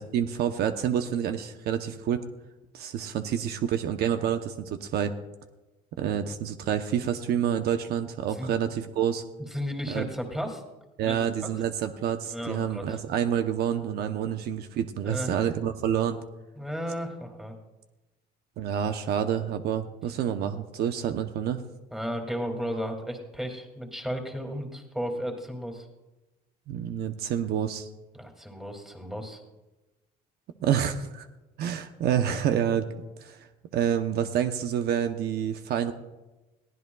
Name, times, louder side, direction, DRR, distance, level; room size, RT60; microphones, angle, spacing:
voice 1, 0.0-2.2 2.7-5.1 6.0-9.2 9.9-10.1 11.0-16.2 18.6-21.6 26.7-27.9 30.6-31.3 31.6-32.9 33.2-33.5 33.7-35.9, right 9 dB, 70° right, 8 dB, 0.8 m, -28 dB
voice 2, 9.5-10.6 11.0-11.2 11.4-11.5 12.3-13.0 15.0-15.4 16.6-17.5 21.9-25.9 28.1-29.4, equal, ahead, 3 dB, 2.4 m, -34 dB
21.5 x 16.0 x 2.3 m, 1.1 s
cardioid pair, 110°, 17 cm